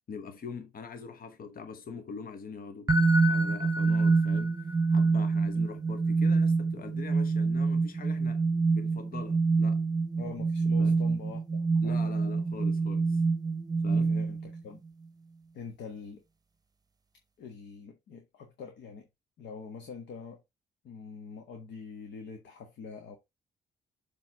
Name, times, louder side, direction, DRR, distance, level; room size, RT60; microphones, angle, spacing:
voice 1, 0.1-2.9 3.2-8.5 8.7-9.8 10.8-11.0 11.8-13.2 13.8-14.2, left 5 dB, 50° left, 1.0 m, -43 dB
sound 1, 2.9-14.6, right 4 dB, 20° right, 0.9 m, -26 dB
voice 2, 10.2-12.1 14.1-14.8 15.5-16.2 17.4-19.1 19.4-20.4 20.8-23.2, left 5 dB, 70° left, 1.3 m, -44 dB
7.0 x 3.4 x 4.8 m
hypercardioid pair, 50°, 19 cm